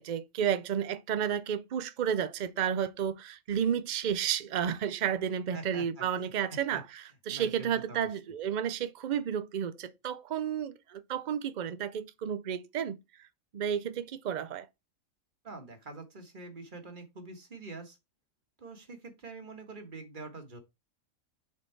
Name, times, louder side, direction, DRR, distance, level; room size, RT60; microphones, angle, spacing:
voice 1, 0.0-13.0 13.5-14.7, right 8 dB, 85° right, 0.4 m, -32 dB
voice 2, 5.5-6.8 7.3-8.1 15.4-18.0 18.6-20.6, right 3 dB, 35° right, 1.7 m, -45 dB
7.2 x 4.2 x 4.5 m
omnidirectional pair, 1.5 m